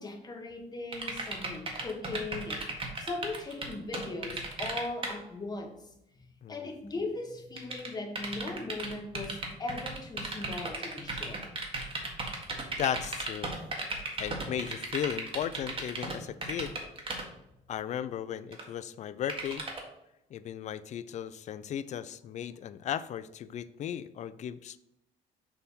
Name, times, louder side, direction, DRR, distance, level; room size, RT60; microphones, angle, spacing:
voice 1, 0.0-11.5, left 2 dB, 25° left, 3 dB, 1.3 m, -39 dB
sound 1, 0.9-5.1 7.6-16.2 16.4-17.2 18.5-18.6 19.3-19.8, right 3 dB, 35° right, 1.6 m, -35 dB
voice 2, 12.8-13.5 14.2-16.8 17.7-19.7 20.3-24.8, left 9 dB, 45° left, 15 dB, 0.4 m, -36 dB
6.9 x 3.5 x 5.5 m, 0.83 s
cardioid pair, 110°, 17 cm